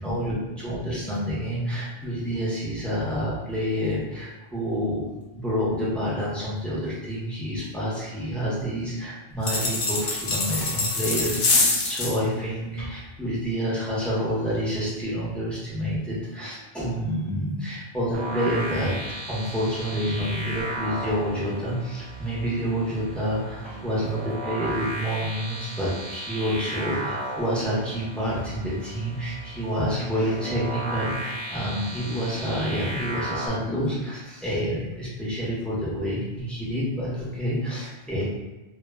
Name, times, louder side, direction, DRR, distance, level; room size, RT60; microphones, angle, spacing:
voice 1, 0.0-5.1 5.3-38.2, equal, ahead, -8 dB, 0.5 m, -28 dB
sound 1, 9.4-12.2, left 3 dB, 60° left, 0.7 m, -24 dB
sound 2, 18.1-33.5, right 2 dB, 85° right, 0.9 m, -35 dB
2.1 x 2.0 x 3.3 m, 1.1 s
omnidirectional pair, 1.1 m